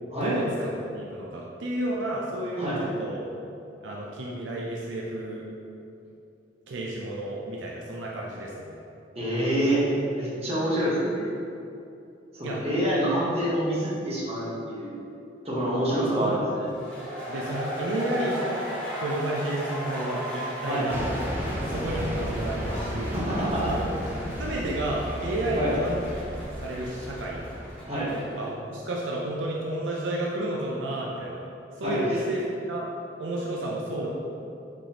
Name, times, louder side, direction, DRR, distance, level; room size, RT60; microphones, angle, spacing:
voice 1, 0.2-3.2 3.8-5.4 6.7-8.8 12.4-12.6 16.2-16.5 17.3-18.4 19.0-23.2 23.6-23.9 24.4-26.3 26.6-27.5 28.3-31.5 31.8-32.9 33.2-34.1, right 1 dB, 80° right, -3 dB, 0.5 m, -31 dB
voice 2, 9.1-9.8 10.2-11.2 12.3-14.9 15.4-16.6 20.6-20.9 23.0-23.7 25.4-25.7 27.9-28.1 31.8-32.1, right 1 dB, 35° right, -8 dB, 1.2 m, -27 dB
sound 1, 16.7-28.3, equal, 5° left, 1.1 m, -37 dB
sound 2, 20.9-27.8, equal, 10° right, 0.5 m, -33 dB
4.7 x 3.9 x 2.9 m, 2.7 s
head